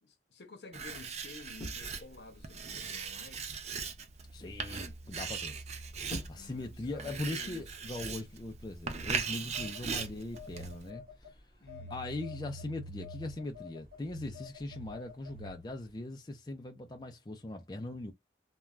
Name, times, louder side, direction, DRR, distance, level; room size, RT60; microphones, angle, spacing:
voice 1, 0.0-3.6 6.3-7.7 11.6-11.9, left 2 dB, 65° left, 0.8 m, -52 dB
Writing, 0.7-10.9, right 5 dB, 40° right, 0.5 m, -40 dB
sound 1, 1.6-2.6 3.3-3.7 5.7-6.6 7.6-7.8, equal, 5° right, 1.3 m, -46 dB
voice 2, 4.3-5.6 6.3-11.4 11.9-18.1, left 2 dB, 25° left, 0.4 m, -40 dB
Telephone, 9.5-11.3 11.7-15.8, left 2 dB, 55° right, 1.3 m, -48 dB
3.2 x 2.2 x 2.3 m
head